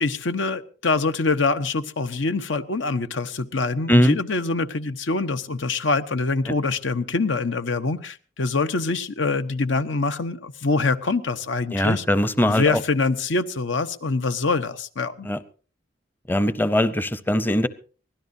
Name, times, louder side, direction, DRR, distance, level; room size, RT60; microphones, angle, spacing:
voice 1, 0.0-12.0 12.5-15.3, left 3 dB, 85° left, 11 dB, 0.9 m, -24 dB
voice 2, 11.7-12.8 15.2-15.4 16.3-17.7, equal, 10° left, 14 dB, 0.6 m, -20 dB
24.0 x 16.5 x 2.7 m, 0.39 s
head